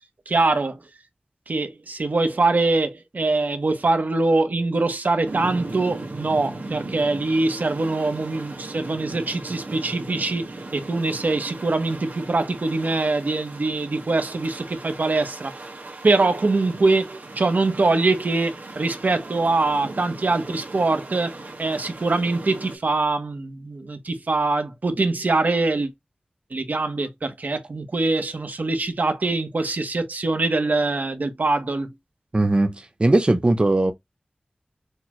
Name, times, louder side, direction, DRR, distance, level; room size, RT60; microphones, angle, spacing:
voice 1, 0.3-0.8 1.5-15.5 16.0-21.3 21.6-25.9 26.5-31.9, right 3 dB, 75° right, 1.0 m, -23 dB
sound 1, 5.2-22.8, right 2 dB, 90° right, 1.5 m, -38 dB
voice 2, 32.3-33.9, right 2 dB, 35° right, 0.7 m, -19 dB
6.5 x 2.3 x 3.0 m
wide cardioid pair, 55°, 3 cm